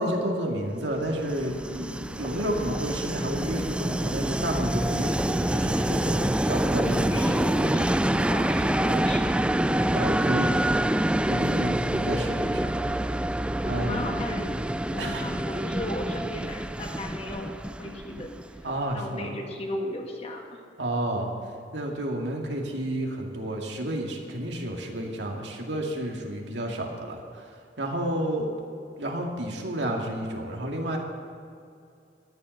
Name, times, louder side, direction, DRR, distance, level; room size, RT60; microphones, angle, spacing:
voice 1, 0.0-7.7 9.9-10.6 11.3-12.7 13.6-14.0 15.0-15.2 18.6-19.3 20.8-21.3 21.7-27.4 27.8-28.5 29.0-31.0, right 1 dB, 90° right, 0 dB, 2.2 m, -30 dB
Train, 1.0-18.8, right 1 dB, 5° right, 0.3 m, -26 dB
voice 2, 7.1-9.4 9.7-10.2 13.7-14.5 14.9-17.5 17.8-18.4 18.9-20.6, left 1 dB, 35° left, 1 dB, 2.0 m, -35 dB
14.0 x 11.0 x 6.6 m, 2.4 s
head